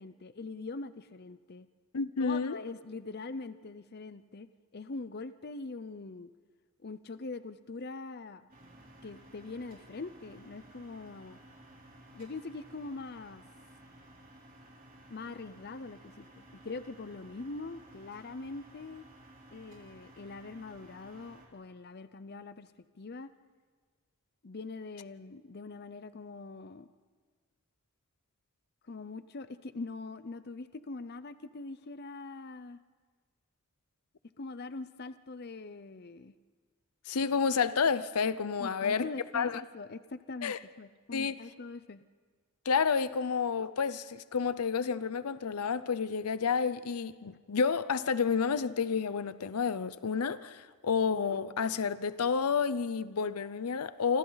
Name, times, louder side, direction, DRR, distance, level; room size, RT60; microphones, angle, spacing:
voice 1, 0.0-1.7 2.2-6.3 6.8-8.5 9.0-11.4 12.1-13.4 15.1-19.0 19.5-23.3 24.4-26.9 28.9-32.8 34.4-36.3 38.6-42.0, left 3 dB, 45° left, 0.6 m, -43 dB
voice 2, 1.9-2.6 37.1-39.1 39.3-39.6 40.4-40.6 41.1-41.4 42.7-54.2, left 5 dB, 85° left, 0.6 m, -30 dB
sound 1, 8.5-21.5, right 1 dB, 40° right, 3.6 m, -55 dB
27.5 x 25.5 x 4.0 m
head